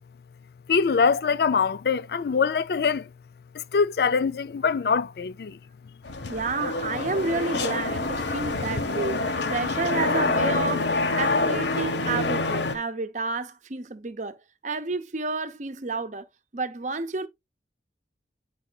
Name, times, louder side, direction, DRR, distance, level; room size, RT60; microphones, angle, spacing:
voice 1, 0.7-3.1 3.5-5.6, left 5 dB, 60° left, 0.4 m, -23 dB
sound 1, 6.0-12.8, left 3 dB, 85° left, 1.1 m, -26 dB
voice 2, 6.3-14.4 14.6-16.2 16.5-17.3, right 3 dB, 45° right, 0.8 m, -30 dB
9.3 x 4.8 x 2.3 m
head